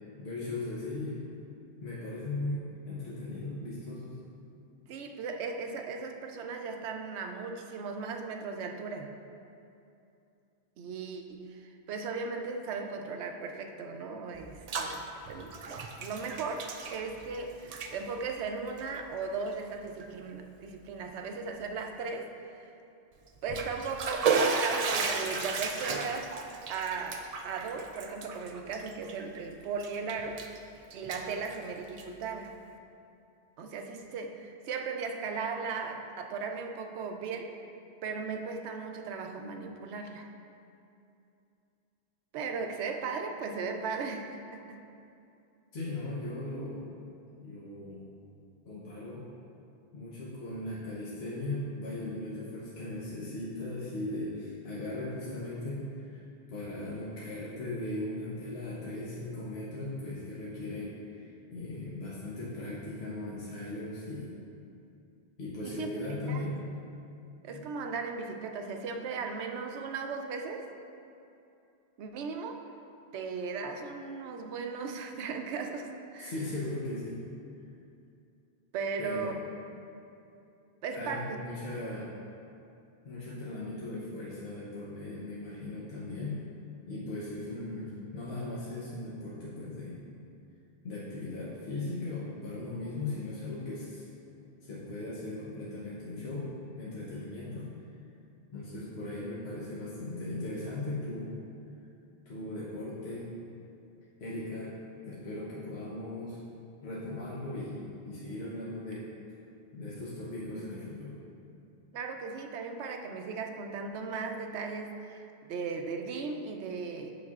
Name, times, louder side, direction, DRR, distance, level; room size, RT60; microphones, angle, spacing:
voice 1, 0.2-1.3 1.8-4.2 45.7-46.9 47.4-48.0 48.7-49.3 49.9-56.2 56.5-64.3 65.4-66.6 67.5-67.6 76.2-77.2 79.0-79.4 80.9-82.1 83.0-86.4 86.9-90.0 90.8-94.0 94.6-97.7 98.5-101.3 102.3-103.3 104.2-104.7 105.0-106.4 106.8-109.1 109.7-111.2, left 2 dB, 75° left, -7 dB, 1.2 m, -38 dB
voice 2, 4.9-9.1 10.8-22.3 22.6-22.7 23.4-26.4 26.7-30.4 30.9-32.6 33.6-37.5 38.0-40.3 42.3-44.8 65.6-65.9 66.3-66.6 67.4-70.7 72.0-72.7 73.1-76.4 78.7-79.4 80.8-81.4 104.5-104.6 111.9-117.1, right 4 dB, 90° right, 4 dB, 0.9 m, -37 dB
Bathtub (filling or washing), 14.4-15.0 15.3-17.4 17.6-17.9 18.7-18.8 19.5-19.6 20.0-20.1 23.3-29.4 29.8-30.6 30.9-32.2, right 4 dB, 60° right, 0.4 m, -33 dB
8.3 x 6.3 x 2.4 m, 2.7 s
omnidirectional pair, 1.1 m